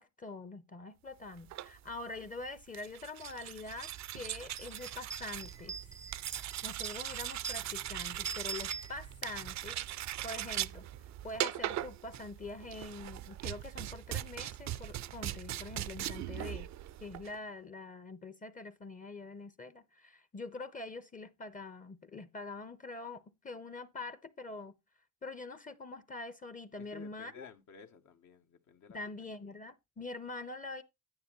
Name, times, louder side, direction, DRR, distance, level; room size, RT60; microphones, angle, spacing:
voice 1, 0.0-5.8 6.3-10.8 11.2-16.7 17.0-24.7 25.2-27.5 28.9-30.8, left 3 dB, 25° left, 0.7 m, -45 dB
sound 1, 1.4-17.4, right 13 dB, 65° right, 0.5 m, -40 dB
sound 2, 3.2-3.3 3.7-9.5, right 4 dB, 10° right, 0.5 m, -46 dB
voice 2, 26.8-29.0 29.4-29.6, left 5 dB, 70° left, 1.3 m, -54 dB
9.5 x 9.0 x 3.1 m
cardioid pair, 90°, 30 cm